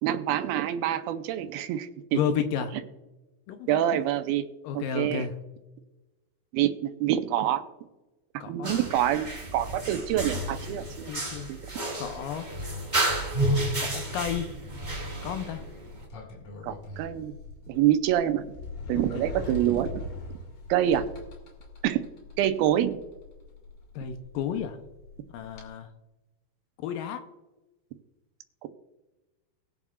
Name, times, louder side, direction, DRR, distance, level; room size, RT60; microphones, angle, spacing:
voice 1, 0.0-2.2 3.7-4.5 4.7-5.3 6.5-7.6 8.5-11.1 11.5-11.6 16.6-17.3 17.7-18.5 18.9-20.0 20.7-21.1 21.8-22.0 22.4-23.0 28.6-28.7, right 11 dB, 85° right, 8 dB, 2.5 m, -26 dB
voice 2, 2.1-2.7 3.5-3.8 4.6-5.4 8.4-8.8 11.1-11.5 12.0-12.5 13.8-14.5 15.2-15.6 18.9-19.4 24.0-24.8 25.3-25.9 26.8-27.2, left 8 dB, 80° left, 7 dB, 2.3 m, -32 dB
sound 1, 8.6-16.0, right 1 dB, 65° right, 0.4 m, -31 dB
Sliding door, 15.2-25.7, left 2 dB, 55° left, 3.1 m, -42 dB
20.5 x 7.2 x 2.4 m, 1.1 s
omnidirectional pair, 4.3 m